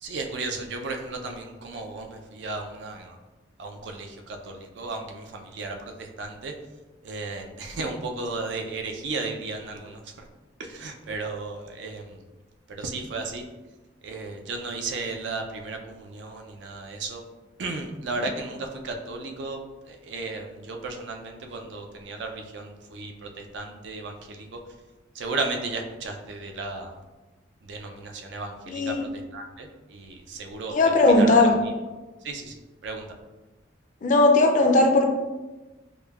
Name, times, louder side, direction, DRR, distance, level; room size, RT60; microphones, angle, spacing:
voice 1, 0.0-3.2 3.6-6.5 7.0-10.2 10.6-12.2 12.7-13.4 14.0-17.2 17.6-19.6 19.9-24.6 25.1-26.9 27.6-29.0 29.3-31.5 32.2-33.1, right 3 dB, 70° right, 4 dB, 0.4 m, -34 dB
voice 2, 28.7-29.0 30.7-31.6 34.0-35.1, left 2 dB, 40° left, 3 dB, 0.4 m, -18 dB
4.9 x 2.2 x 2.3 m, 1.2 s
head